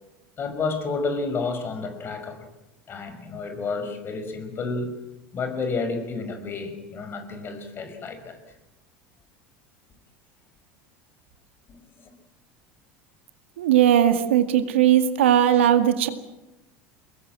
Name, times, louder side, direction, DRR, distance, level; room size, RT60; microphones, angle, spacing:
voice 1, 0.4-2.5 2.9-4.9 5.3-8.4 11.7-12.1, left 4 dB, 35° left, 8 dB, 5.3 m, -30 dB
voice 2, 13.6-16.1, right 10 dB, 85° right, 8 dB, 2.0 m, -18 dB
24.0 x 21.0 x 7.8 m, 0.94 s
hypercardioid pair, 95°, 6 cm